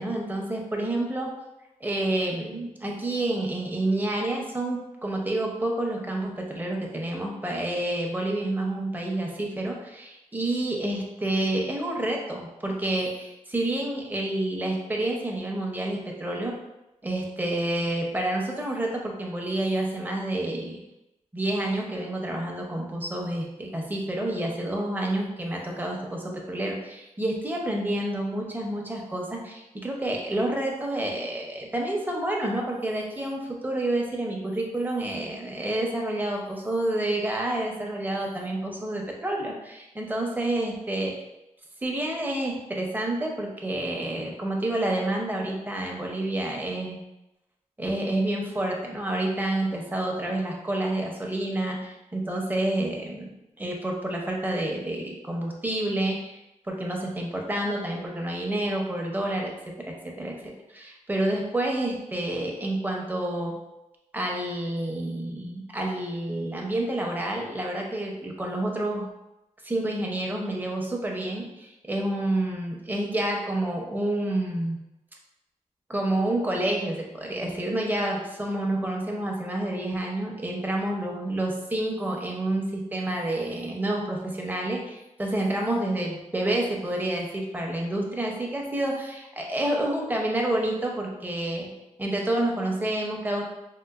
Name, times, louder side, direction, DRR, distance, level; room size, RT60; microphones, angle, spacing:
voice 1, 0.0-1.4 1.8-16.5 17.0-20.8 21.3-41.1 41.8-47.0 47.8-56.4 56.7-59.5 60.0-63.6 64.1-69.1 69.6-74.8 75.9-91.7 92.0-93.4, right 1 dB, 15° right, 0 dB, 0.6 m, -29 dB
3.7 x 2.4 x 2.4 m, 0.93 s
wide cardioid pair, 85°, 13 cm